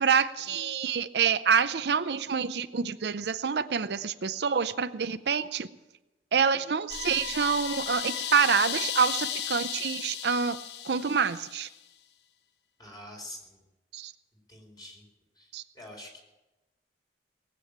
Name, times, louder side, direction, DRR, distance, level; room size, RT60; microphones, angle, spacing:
voice 1, 0.0-5.7 6.3-10.6 10.8-11.7 13.9-14.1 15.5-15.6, right 6 dB, 65° right, 12 dB, 0.6 m, -27 dB
sound 1, 6.9-11.7, left 9 dB, 70° left, 0.8 m, -35 dB
voice 2, 12.8-13.6 14.5-15.0 15.3-16.2, left 1 dB, 25° left, 0 dB, 4.3 m, -46 dB
19.0 x 8.4 x 8.7 m, 1.0 s
head